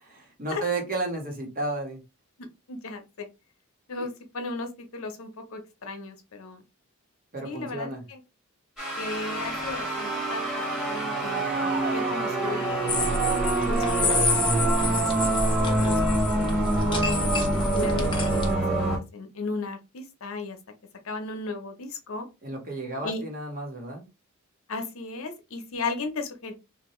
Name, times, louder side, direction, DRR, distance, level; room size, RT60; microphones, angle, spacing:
voice 1, 0.4-2.0 4.0-4.1 7.3-8.0 22.4-24.1, right 2 dB, 40° right, 1.2 m, -32 dB
voice 2, 2.7-3.3 3.9-6.6 7.4-8.2 9.0-13.2 13.6-15.4 15.7-16.5 17.0-17.3 17.7-20.6 21.0-22.3 23.0-23.2 24.7-26.5, left 3 dB, 70° left, 0.8 m, -36 dB
sound 1, 8.8-19.0, right 2 dB, ahead, 1.1 m, -26 dB
sound 2, 12.9-18.5, left 2 dB, 25° left, 0.6 m, -28 dB
2.8 x 2.5 x 3.1 m
head